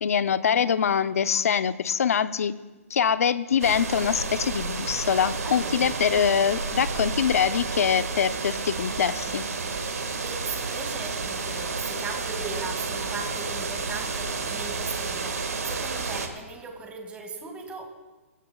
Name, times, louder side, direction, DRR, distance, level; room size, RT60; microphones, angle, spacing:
voice 1, 0.0-2.5 2.9-9.4, left 7 dB, 70° left, 13 dB, 0.7 m, -24 dB
sound 1, 3.6-16.3, right 4 dB, 85° right, 1.9 m, -31 dB
voice 2, 5.4-5.8 9.9-17.9, right 4 dB, 15° right, 3 dB, 2.2 m, -38 dB
24.0 x 16.0 x 2.4 m, 1.2 s
hypercardioid pair, 140°, 8 cm